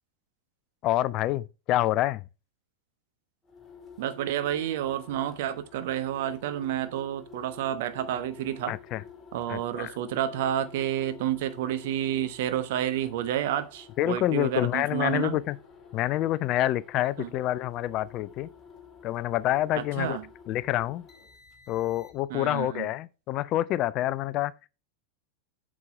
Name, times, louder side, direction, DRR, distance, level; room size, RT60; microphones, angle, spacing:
voice 1, 0.8-2.2 8.7-9.0 9.5-10.0 14.0-15.6 15.9-18.5 19.0-20.2 20.5-21.1 21.7-24.5, left 14 dB, 35° left, 0.4 m, -27 dB
sound 1, 3.4-22.4, left 5 dB, 20° left, 2.2 m, -50 dB
voice 2, 4.0-8.7 9.3-15.3 17.2-17.3 19.8-20.2 22.3-22.9, right 11 dB, 50° right, 1.0 m, -30 dB
8.2 x 6.3 x 3.3 m
figure-of-eight pair, 90°, 0 cm